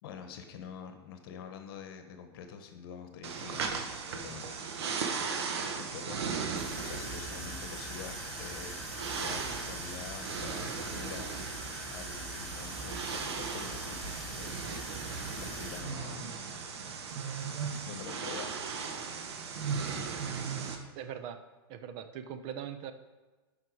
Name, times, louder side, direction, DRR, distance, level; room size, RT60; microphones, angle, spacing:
voice 1, 0.0-4.6 5.8-6.3 6.8-8.7 9.1-11.3 11.9-14.8 15.3-16.3 17.9-18.5, left 7 dB, 60° left, 6 dB, 1.2 m, -46 dB
sound 1, 3.2-20.8, right 5 dB, 75° right, 1.1 m, -37 dB
sound 2, 6.6-15.8, left 1 dB, ahead, 2.4 m, -44 dB
voice 2, 21.0-21.4 21.7-22.9, right 9 dB, 40° right, 10 dB, 0.6 m, -40 dB
7.6 x 5.7 x 4.8 m, 1.2 s
supercardioid pair, 140°, 14 cm